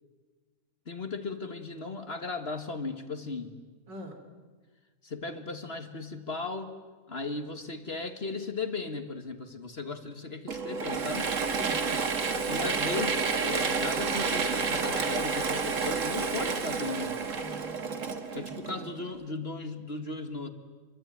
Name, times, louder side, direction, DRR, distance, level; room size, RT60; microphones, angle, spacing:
voice 1, 0.8-3.5 5.0-6.8 7.1-11.3 12.5-17.2 18.3-20.5, left 3 dB, 35° left, 8 dB, 1.7 m, -36 dB
Mechanisms / Drill, 10.5-19.1, right 5 dB, 45° right, 1.9 m, -30 dB
voice 2, 11.6-12.1 17.2-18.1 18.3-18.9, right 1 dB, 85° right, 6 dB, 3.9 m, -45 dB
27.0 x 23.5 x 9.2 m, 1.4 s
omnidirectional pair, 1.9 m